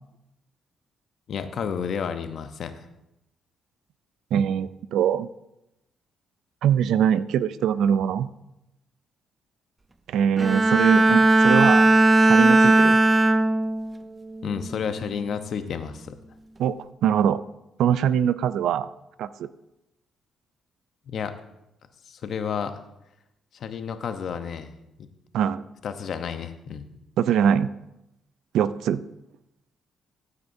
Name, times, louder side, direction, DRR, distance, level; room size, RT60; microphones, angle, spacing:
voice 1, 1.3-2.9 14.4-16.1 21.1-21.3 22.1-22.7 23.5-24.7 25.0-25.1 25.8-26.9, left 7 dB, 60° left, 9 dB, 0.8 m, -31 dB
voice 2, 4.3-5.3 6.6-8.3 10.1-11.9 12.3-13.0 16.6-16.7 17.0-17.4 17.8-18.9 19.2-19.5 25.3-25.6 27.2-27.7 28.5-29.0, right 9 dB, 80° right, 15 dB, 0.4 m, -22 dB
Bowed string instrument, 10.4-13.9 14.4-14.8, right 2 dB, 20° right, 0.7 m, -18 dB
14.5 x 8.1 x 2.7 m, 0.88 s
cardioid pair, 90°, 0 cm